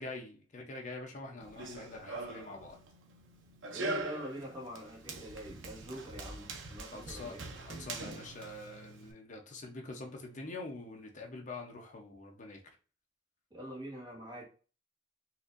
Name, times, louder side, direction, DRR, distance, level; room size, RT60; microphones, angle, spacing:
voice 1, 0.0-2.8 6.9-12.6, left 2 dB, 40° left, 0.7 m, -45 dB
Run, 1.4-9.1, right 2 dB, 80° right, 0.6 m, -43 dB
voice 2, 3.7-7.4 13.5-14.4, equal, 25° right, 1.2 m, -45 dB
4.2 x 2.6 x 2.5 m
head